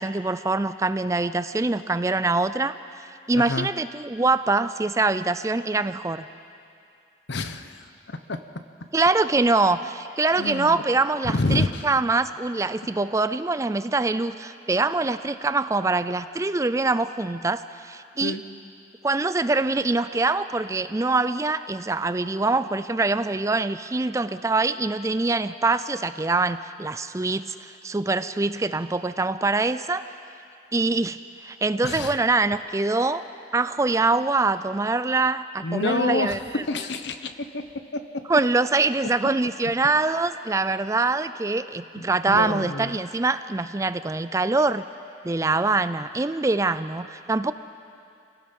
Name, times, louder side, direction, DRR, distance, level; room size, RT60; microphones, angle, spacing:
voice 1, 0.0-2.8 3.3-6.3 8.9-18.4 19.0-30.1 30.7-33.2 33.5-36.4 38.3-44.8 45.2-47.5, right 3 dB, 15° right, 13 dB, 0.4 m, -24 dB
voice 2, 3.3-3.7 7.3-8.4 10.4-10.8 11.3-11.8 18.2-18.4 31.8-32.1 35.6-36.4 36.7-37.6 42.0-42.9, left 2 dB, 75° left, 9 dB, 1.0 m, -28 dB
28.0 x 17.5 x 5.4 m, 2.5 s
head